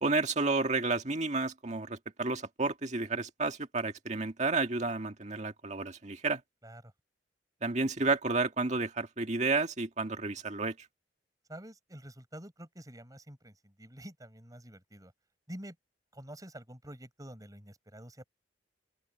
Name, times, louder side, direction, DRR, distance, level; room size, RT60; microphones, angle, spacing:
voice 1, 0.0-6.4 7.6-10.8, right 3 dB, 40° right, 1.9 m, -31 dB
voice 2, 11.5-15.1 15.5-15.8 16.1-18.2, right 1 dB, 20° right, 7.0 m, -48 dB
open air
head